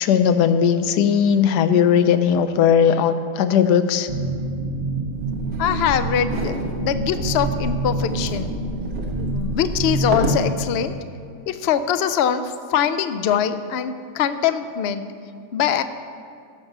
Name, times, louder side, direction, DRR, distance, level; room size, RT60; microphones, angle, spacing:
voice 1, 0.0-4.1, left 8 dB, 90° left, 10 dB, 1.2 m, -18 dB
sound 1, 4.1-10.9, right 2 dB, 40° right, 0.9 m, -27 dB
sound 2, 5.1-10.5, right 1 dB, 85° right, 1.8 m, -30 dB
voice 2, 5.6-8.5 9.2-10.9 11.5-15.0 15.5-15.8, left 8 dB, 70° left, 11 dB, 0.6 m, -23 dB
15.5 x 6.0 x 6.6 m, 2.3 s
omnidirectional pair, 1.7 m